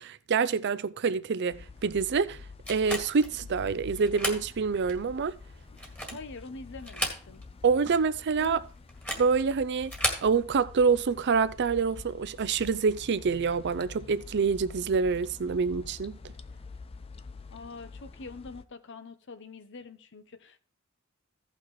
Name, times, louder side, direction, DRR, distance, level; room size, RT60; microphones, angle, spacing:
voice 1, 0.0-2.4 2.7-5.4 7.6-8.6 9.2-9.9 10.2-16.2, right 5 dB, 55° right, 0.5 m, -26 dB
sound 1, 1.5-18.6, left 4 dB, 30° left, 0.4 m, -47 dB
sound 2, 2.7-3.3 4.0-4.5 4.9-5.0 5.7-6.3 6.8-7.6 7.9-8.0 8.9-9.3 9.8-10.3, equal, 10° left, 1.9 m, -33 dB
voice 2, 6.1-7.4 8.4-8.6 17.5-20.6, left 4 dB, 60° left, 0.8 m, -44 dB
16.0 x 5.8 x 3.1 m
head